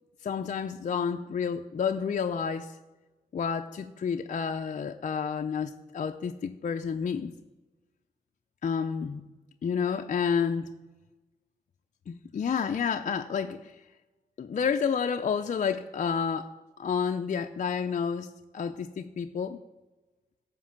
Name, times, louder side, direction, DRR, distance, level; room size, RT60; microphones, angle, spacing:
voice 1, 0.2-2.8 3.3-7.3 8.6-9.2 9.6-10.7 12.1-13.8 14.4-16.5 16.8-19.6, left 6 dB, 55° left, 5 dB, 0.6 m, -30 dB
14.5 x 5.3 x 8.9 m, 1.1 s
cardioid pair, 60°, 15 cm